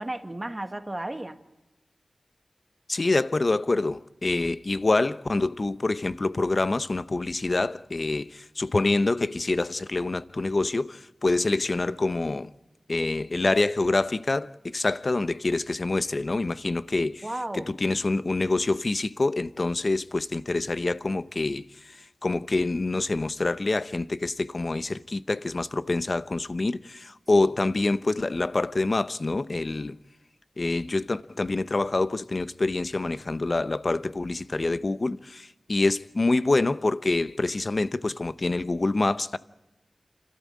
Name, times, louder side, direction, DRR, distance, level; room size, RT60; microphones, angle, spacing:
voice 1, 0.0-1.4 17.2-17.7 27.3-27.5, right 1 dB, 25° right, 1.5 m, -33 dB
voice 2, 2.9-12.5 12.9-17.3 17.5-21.6 22.2-30.0 30.6-39.4, left 2 dB, 45° left, 0.8 m, -26 dB
29.5 x 13.5 x 8.5 m
wide cardioid pair, 80°, 0 cm